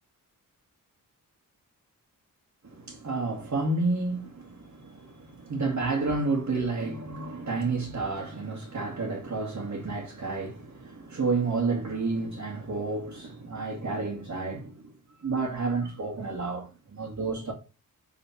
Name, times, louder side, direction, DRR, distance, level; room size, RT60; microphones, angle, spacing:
voice 1, 2.6-14.9 15.2-17.5, right 3 dB, 55° right, 2.1 m, -30 dB
5.7 x 4.0 x 5.9 m
wide cardioid pair, 100°, 34 cm